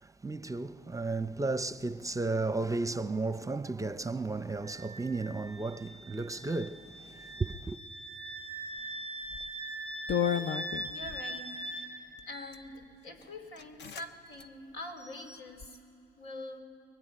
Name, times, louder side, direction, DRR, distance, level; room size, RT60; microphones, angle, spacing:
voice 1, 0.2-7.8, right 3 dB, 15° right, 0.6 m, -34 dB
Wind instrument woodwind instrument, 4.6-11.9, right 1 dB, 35° left, 3.9 m, -41 dB
sound 1, 9.3-9.5 10.1-11.2 12.2-12.6 13.2-13.3 13.6-14.1 14.3-14.5 15.0-15.7, left 8 dB, 60° left, 0.9 m, -34 dB
voice 2, 10.1-10.5 10.9-15.8 16.2-16.6, left 1 dB, 85° left, 3.3 m, -45 dB
24.0 x 22.5 x 9.9 m
cardioid pair, 90°, 20 cm